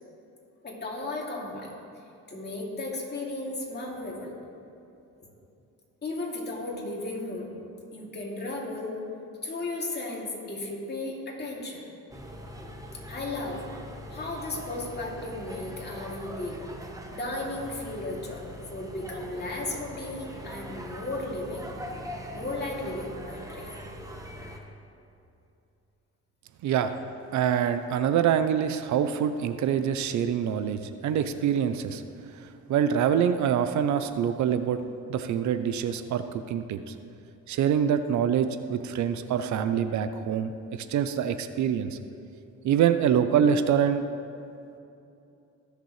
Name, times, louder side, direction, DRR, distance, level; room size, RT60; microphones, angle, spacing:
voice 1, 0.6-1.7 2.3-4.3 6.0-7.5 7.9-9.0 9.4-11.8 13.1-13.6 14.1-16.6 17.1-18.4 18.7-21.7 22.3-23.7, left 2 dB, 35° left, -3 dB, 2.6 m, -35 dB
sound 1, 12.1-24.6, equal, 10° right, 1.2 m, -42 dB
voice 2, 27.3-32.0 32.4-34.8 35.1-36.9 37.5-40.5 40.9-42.0 42.6-44.0, right 8 dB, 70° right, 10 dB, 0.6 m, -25 dB
19.5 x 6.8 x 3.2 m, 2.7 s
cardioid pair, 90°, 30 cm